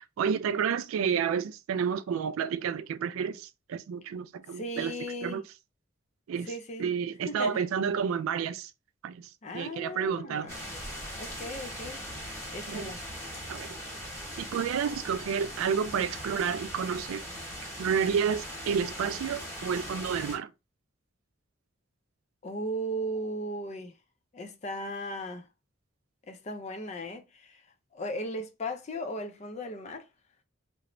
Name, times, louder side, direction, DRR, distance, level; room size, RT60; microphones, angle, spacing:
voice 1, 0.0-4.9 5.2-5.4 6.3-6.5 6.8-8.7 9.0-10.5 12.7-12.9 13.5-13.8 14.4-17.3 17.8-20.5, right 7 dB, 90° right, 0.3 m, -30 dB
voice 2, 4.5-5.4 6.4-6.9 7.3-7.6 9.4-10.7 11.2-12.0 12.5-13.0 22.4-23.9 24.3-25.5 26.3-27.6 27.9-30.1, equal, 35° left, 0.4 m, -37 dB
sound 1, 10.5-20.4, equal, 15° left, 1.0 m, -40 dB
3.0 x 2.1 x 2.5 m
head